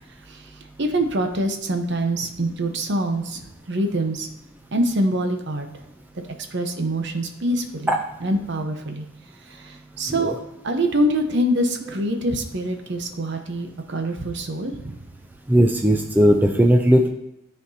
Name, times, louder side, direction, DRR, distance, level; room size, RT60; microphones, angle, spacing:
voice 1, 0.8-4.3 4.7-5.7 6.1-6.2 6.5-9.1 9.5-15.0, right 1 dB, 60° right, 5 dB, 0.9 m, -25 dB
voice 2, 15.5-17.1, equal, 10° right, 3 dB, 0.4 m, -17 dB
12.5 x 4.3 x 2.7 m, 0.90 s
head